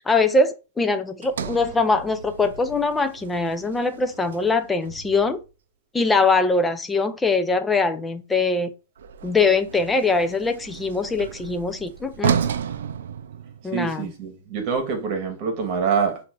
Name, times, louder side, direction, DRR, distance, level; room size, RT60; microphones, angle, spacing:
voice 1, 0.0-5.4 5.9-8.7 9.2-12.4 13.6-14.1, left 3 dB, 10° left, 0.4 m, -22 dB
Sliding door, 1.2-5.5 9.0-13.9, right 8 dB, 85° right, 0.4 m, -32 dB
voice 2, 13.7-16.2, right 6 dB, 45° right, 1.3 m, -25 dB
6.0 x 2.6 x 2.5 m
supercardioid pair, 150°, 0 cm